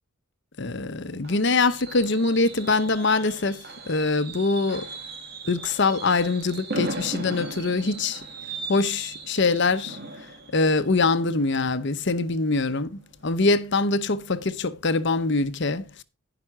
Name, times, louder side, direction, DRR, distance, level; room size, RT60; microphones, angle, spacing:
voice 1, 0.6-3.6 3.9-4.9 5.5-8.2 8.7-10.0 10.5-16.0, left 3 dB, 55° left, 0.9 m, -23 dB
Fireworks, 0.6-12.3 12.7-12.9 13.2-13.3, right 3 dB, 50° right, 2.5 m, -38 dB
14.5 x 5.9 x 4.8 m
head